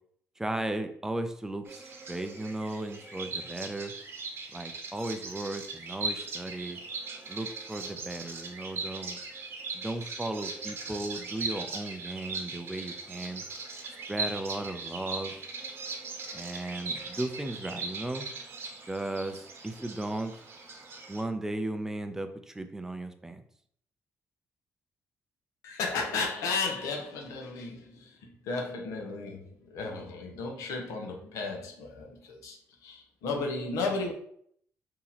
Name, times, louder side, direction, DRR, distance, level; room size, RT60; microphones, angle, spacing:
voice 1, 0.4-3.9 4.5-6.8 7.3-9.2 9.7-13.4 14.1-15.3 16.3-18.3 18.9-20.4 21.1-23.4, right 1 dB, 10° right, 8 dB, 0.4 m, -36 dB
Bird vocalization bird call bird song, 1.7-21.2, right 4 dB, 50° right, 0.8 m, -39 dB
voice 2, 25.6-32.6 32.8-34.1, left 3 dB, 85° left, 2 dB, 0.8 m, -34 dB
2.9 x 2.8 x 3.9 m, 0.63 s
cardioid pair, 110°, 5 cm